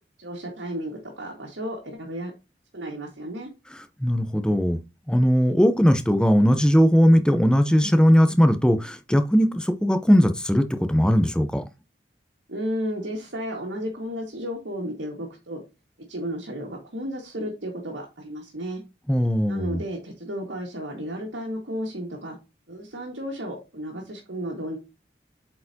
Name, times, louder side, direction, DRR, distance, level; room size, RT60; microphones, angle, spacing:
voice 1, 0.2-2.3 2.7-3.5 12.5-15.6 16.1-18.8 19.5-22.4 22.7-24.8, equal, 80° right, 1.8 m, -33 dB
voice 2, 4.0-4.8 5.1-11.6 19.1-19.8, equal, 5° left, 0.7 m, -19 dB
8.1 x 4.5 x 2.8 m
head